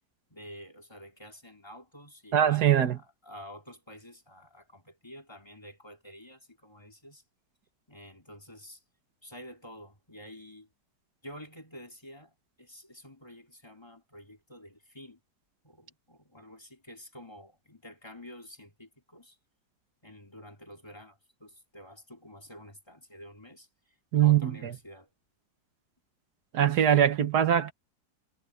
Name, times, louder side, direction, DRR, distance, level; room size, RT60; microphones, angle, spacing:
voice 1, 0.3-7.2 7.9-8.8 9.2-10.7 11.2-15.2 15.6-19.4 20.0-23.7 24.2-25.1, equal, 15° left, 3.3 m, -49 dB
voice 2, 2.3-3.0 24.1-24.7 26.5-27.7, right 10 dB, 80° right, 1.6 m, -22 dB
omnidirectional pair, 1.7 m